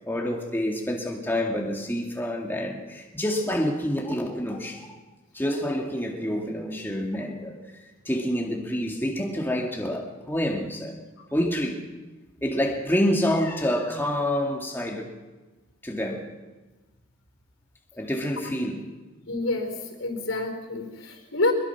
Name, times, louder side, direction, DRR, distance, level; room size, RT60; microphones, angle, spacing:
voice 1, 0.1-4.9 5.3-7.6 8.0-11.0 11.3-11.8 12.4-15.1 15.8-16.3 18.0-18.9, equal, 10° left, 2.2 m, -27 dB
voice 2, 19.3-19.7 20.0-21.5, left 2 dB, 80° left, 4.4 m, -27 dB
24.0 x 21.5 x 6.0 m
head